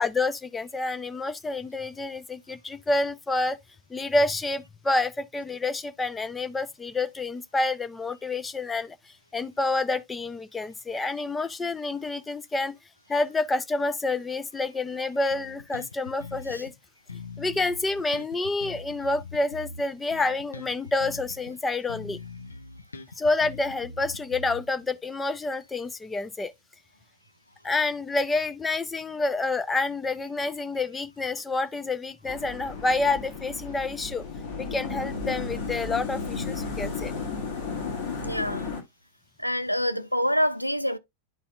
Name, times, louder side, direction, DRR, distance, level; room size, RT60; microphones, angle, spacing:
voice 1, 0.0-3.6 3.9-12.8 13.1-16.7 17.4-22.2 23.2-26.5 27.6-34.2 34.6-37.1, left 2 dB, 10° left, 0.5 m, -28 dB
Bass guitar, 15.3-16.8 17.1-21.6 21.9-24.9, left 3 dB, 75° left, 0.8 m, -42 dB
sound 1, 32.2-38.8, left 4 dB, 50° left, 2.1 m, -34 dB
voice 2, 38.2-38.7 39.4-41.0, equal, 90° right, 0.4 m, -26 dB
11.0 x 4.2 x 2.4 m
figure-of-eight pair, 90°, 0 cm